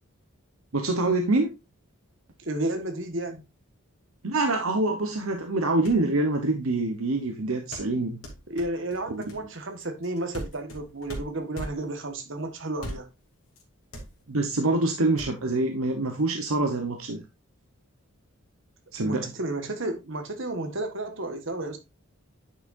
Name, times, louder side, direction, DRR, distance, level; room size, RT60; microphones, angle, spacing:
voice 1, 0.7-1.5 4.2-8.2 9.1-9.2 14.3-17.2 18.9-19.3, right 2 dB, 75° right, 1.0 m, -25 dB
voice 2, 2.4-3.4 8.5-13.1 19.0-21.8, right 2 dB, 60° right, 1.5 m, -32 dB
sound 1, 5.6-5.7 5.8-6.1 7.7-12.1 12.7-13.3 13.6-13.7 13.9-14.5 15.2-15.3, equal, 80° left, 2.8 m, -39 dB
9.7 x 6.2 x 2.6 m
head